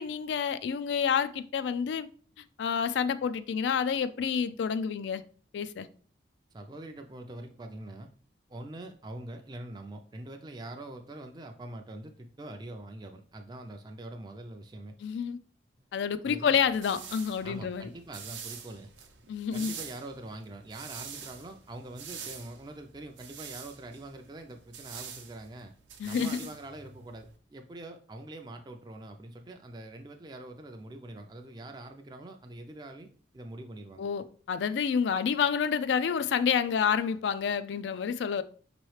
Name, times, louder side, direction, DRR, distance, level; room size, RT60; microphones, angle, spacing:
voice 1, 0.0-2.1 2.6-5.2 5.5-5.9 15.0-15.4 15.9-17.9 19.3-19.8 26.0-26.4 34.0-38.4, left 7 dB, 75° left, 0.3 m, -29 dB
voice 2, 6.5-8.1 8.5-14.9 15.8-15.9 16.2-16.6 17.4-18.9 19.5-25.7 26.0-33.1 33.3-34.1, right 1 dB, 25° right, 0.3 m, -44 dB
sound 1, 16.4-27.4, right 7 dB, 90° right, 0.7 m, -46 dB
5.5 x 3.0 x 3.1 m
head